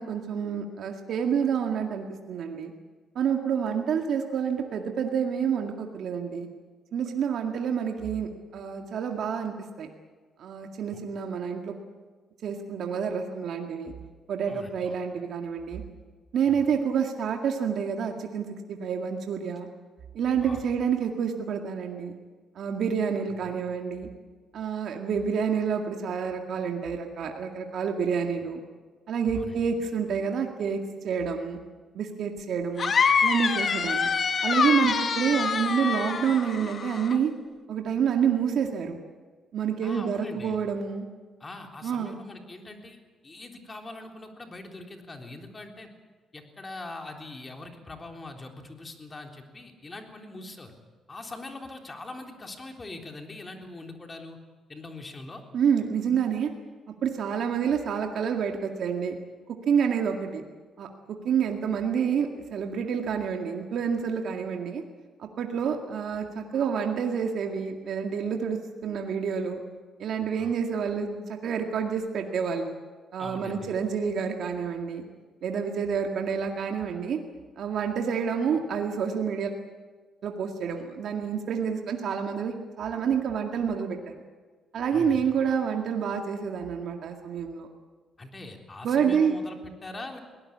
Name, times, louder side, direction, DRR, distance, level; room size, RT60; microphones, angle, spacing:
voice 1, 0.0-2.7 3.2-6.5 6.9-9.9 10.4-11.8 12.4-13.9 14.3-15.8 16.3-19.7 20.1-22.1 22.6-24.1 24.5-28.6 29.1-31.6 31.9-32.9 33.2-34.1 34.4-37.3 37.7-39.0 39.5-41.1 41.8-42.2 55.5-56.5 57.0-59.2 59.7-60.4 60.8-64.8 65.2-69.6 70.0-72.7 73.1-75.0 75.4-77.2 77.6-79.5 80.2-84.2 84.7-87.7 88.8-89.3, right 7 dB, 65° right, 3 dB, 2.0 m, -28 dB
voice 2, 14.5-15.0 16.5-16.7 20.4-20.6 23.3-23.5 29.3-29.6 39.8-40.6 41.4-43.0 43.2-45.9 46.3-50.7 51.1-54.4 54.7-55.4 70.4-70.5 73.2-73.7 84.9-85.2 88.2-90.2, left 2 dB, 30° left, 3 dB, 3.7 m, -42 dB
sound 1, 32.8-37.2, left 5 dB, 50° left, 1.7 m, -25 dB
22.0 x 18.0 x 8.6 m, 1.4 s
cardioid pair, 90°, 0 cm